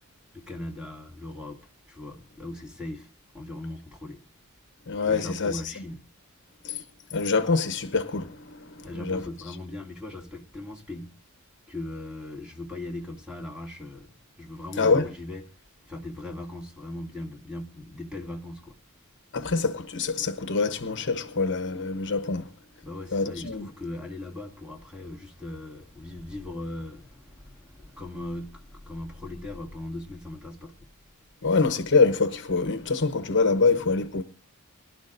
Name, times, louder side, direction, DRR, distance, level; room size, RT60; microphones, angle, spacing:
voice 1, 0.3-1.6 1.9-3.1 3.3-4.2 5.0-6.0 8.8-11.1 11.7-15.4 15.9-18.8 22.8-30.8, left 1 dB, 5° right, 2.5 m, -39 dB
voice 2, 4.9-5.8 6.6-6.8 7.1-9.2 14.8-15.0 19.3-22.5 23.1-23.7 31.4-34.2, left 4 dB, 55° left, 1.0 m, -25 dB
23.0 x 12.0 x 2.6 m
head